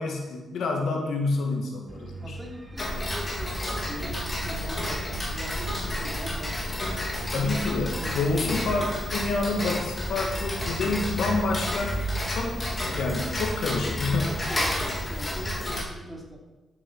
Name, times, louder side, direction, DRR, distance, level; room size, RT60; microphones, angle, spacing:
voice 1, 0.0-2.4 7.3-12.0 12.3-12.6 12.9-14.5, left 3 dB, 75° left, 1 dB, 2.2 m, -28 dB
sound 1, 1.9-12.9, right 2 dB, 35° right, 2.3 m, -42 dB
voice 2, 2.2-6.8 8.0-8.7 14.5-16.4, equal, 10° right, -1 dB, 3.3 m, -41 dB
Tick-tock, 2.8-15.8, left 1 dB, 25° left, 2.9 m, -31 dB
11.5 x 7.6 x 5.8 m, 1.2 s
cardioid pair, 85°, 0 cm